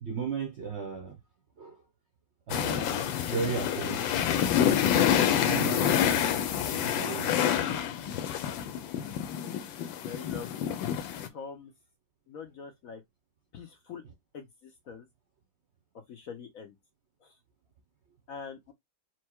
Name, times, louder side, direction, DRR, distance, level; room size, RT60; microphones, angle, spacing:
voice 1, 0.0-1.2 1.6-1.8 2.5-4.0 5.5-5.9 6.8-7.4, right 5 dB, 55° right, 0.7 m, -35 dB
sound 1, 2.5-11.3, left 9 dB, 85° left, 1.4 m, -27 dB
voice 2, 10.0-10.6 11.3-11.7 12.3-13.0 13.5-14.0 14.3-14.4 14.9-15.0 16.1-16.7 18.3-18.7, left 6 dB, 65° left, 0.9 m, -43 dB
4.5 x 2.1 x 4.3 m
omnidirectional pair, 2.0 m